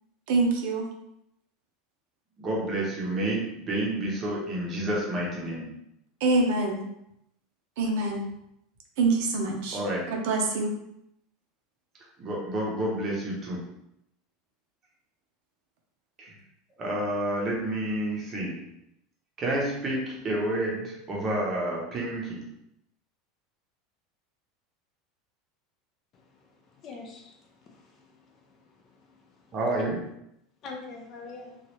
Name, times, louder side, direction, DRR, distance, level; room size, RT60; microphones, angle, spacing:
voice 1, 0.3-0.9 6.2-6.8 7.8-8.3 9.0-9.8 10.1-10.7, right 3 dB, 65° right, 1 dB, 0.6 m, -25 dB
voice 2, 2.4-5.8 9.7-10.0 12.2-13.6 16.2-16.3 16.8-18.6 19.4-22.5 29.5-30.0, right 1 dB, 25° right, -3 dB, 0.7 m, -29 dB
voice 3, 26.8-28.0 28.4-28.5 29.1-29.2 30.6-31.6, left 3 dB, 30° left, 1 dB, 0.4 m, -43 dB
3.0 x 2.3 x 3.0 m, 0.79 s
supercardioid pair, 170°, 0 cm